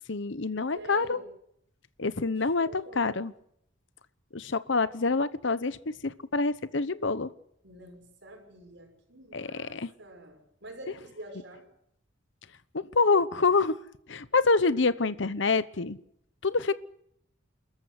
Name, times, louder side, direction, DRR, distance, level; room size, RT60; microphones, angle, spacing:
voice 1, 0.1-1.2 2.0-2.7 3.0-3.3 4.3-5.8 6.0-7.3 9.3-9.9 12.7-13.8 14.1-16.0 16.4-16.7, left 4 dB, 65° left, 15 dB, 0.9 m, -26 dB
voice 2, 0.7-1.3 2.3-3.2 7.6-11.7 15.0-15.5, right 1 dB, 60° right, 4 dB, 6.4 m, -46 dB
28.5 x 14.5 x 8.2 m, 0.71 s
head